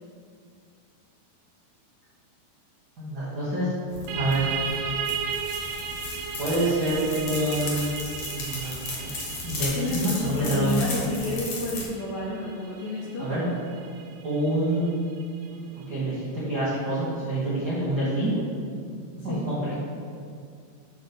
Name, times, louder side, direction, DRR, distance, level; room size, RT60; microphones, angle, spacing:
voice 1, 3.0-3.7 4.1-4.4 6.4-11.1 13.2-13.5 14.2-14.9 15.5-15.6 15.9-18.3 19.2-19.8, right 1 dB, 60° right, -10 dB, 1.0 m, -27 dB
sound 1, 3.9-11.9, left 2 dB, 60° left, 1.6 m, -35 dB
sound 2, 4.1-15.4, right 6 dB, 80° right, 1.8 m, -36 dB
voice 2, 9.8-13.3 19.3-19.5, left 2 dB, 75° left, -5 dB, 2.1 m, -30 dB
7.5 x 3.8 x 6.0 m, 2.3 s
omnidirectional pair, 4.7 m